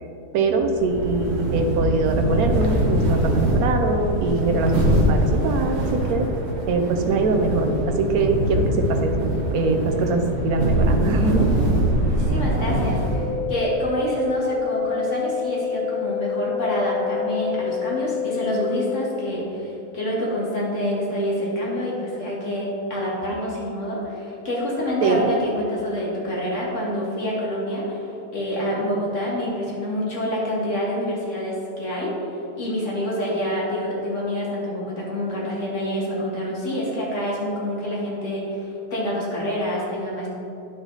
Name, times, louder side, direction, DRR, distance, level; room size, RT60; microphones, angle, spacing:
voice 1, 0.3-6.3 6.7-11.5 25.0-25.2, right 3 dB, 65° right, 4 dB, 1.2 m, -22 dB
sound 1, 0.7-13.5, right 1 dB, 45° right, 1.2 m, -23 dB
voice 2, 12.1-32.2 32.6-40.3, equal, 45° left, -5 dB, 2.1 m, -27 dB
sound 2, 13.1-19.1, left 8 dB, 5° left, 1.1 m, -27 dB
10.0 x 6.1 x 4.0 m, 3.0 s
omnidirectional pair, 1.8 m